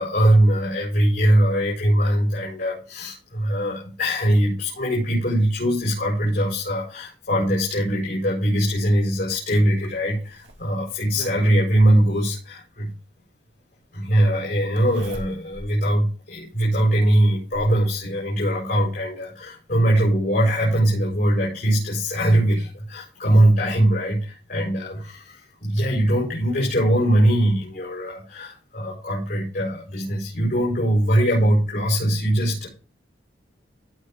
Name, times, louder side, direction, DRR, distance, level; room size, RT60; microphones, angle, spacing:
voice 1, 0.0-12.9 13.9-32.7, right 1 dB, 50° left, -4 dB, 5.1 m, -21 dB
Zipper (clothing), 9.8-11.6 13.0-13.1 14.8-15.7 16.2-16.3 17.0-17.8 19.0-19.1 19.5-19.6, right 1 dB, 80° right, 2.3 m, -40 dB
16.0 x 5.9 x 3.7 m, 0.35 s
head